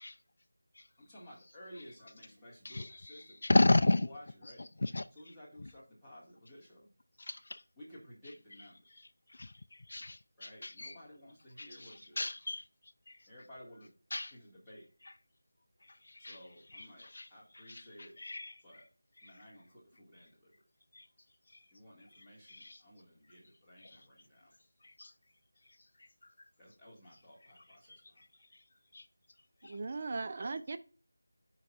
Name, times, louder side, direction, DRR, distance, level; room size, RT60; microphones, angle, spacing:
voice 1, 1.0-4.6 5.1-6.9 7.8-8.8 10.4-12.2 13.3-13.9 14.3-14.9 16.2-18.2 18.6-18.9 19.2-20.5 21.7-24.5 26.6-28.2 30.1-30.3, equal, ahead, 2.2 m, -55 dB
voice 2, 3.4-4.0 4.8-5.0 7.3-7.6 9.4-9.5 9.9-10.9 11.6-11.9 12.2-12.6 14.1-14.3 16.2-16.3 17.1-17.2 17.7-17.8 18.2-18.5 22.6-22.8 25.0-25.1 28.9-29.0 29.6-29.7, left 2 dB, 55° left, 0.3 m, -30 dB
voice 3, 29.6-30.8, right 3 dB, 35° right, 0.5 m, -38 dB
13.0 x 4.9 x 2.5 m
figure-of-eight pair, 170°, 0 cm